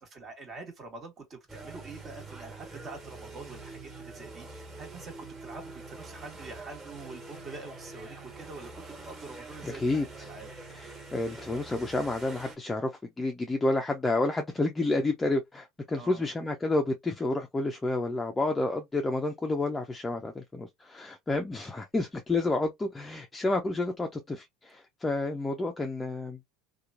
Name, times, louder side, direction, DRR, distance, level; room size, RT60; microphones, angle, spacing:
voice 1, 0.0-5.1 5.4-10.5 11.0-11.2 15.9-16.3, right 3 dB, 35° right, 1.3 m, -45 dB
sound 1, 1.5-12.6, right 3 dB, 20° right, 1.4 m, -45 dB
voice 2, 9.6-10.3 10.7-26.4, left 2 dB, 15° left, 0.5 m, -30 dB
2.9 x 2.2 x 2.5 m
hypercardioid pair, 85°, 0 cm